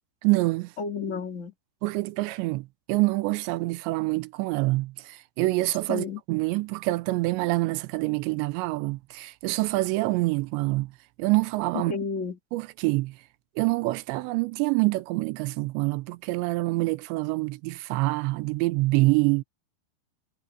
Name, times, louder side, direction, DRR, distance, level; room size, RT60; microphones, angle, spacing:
voice 1, 0.2-0.7 1.8-10.9 11.2-11.9 12.5-13.2 13.6-19.4, right 21 dB, 85° right, 2.9 m, -26 dB
voice 2, 0.8-1.5 5.9-6.2 11.7-12.4, left 5 dB, 20° left, 2.2 m, -31 dB
omnidirectional pair, 5.0 m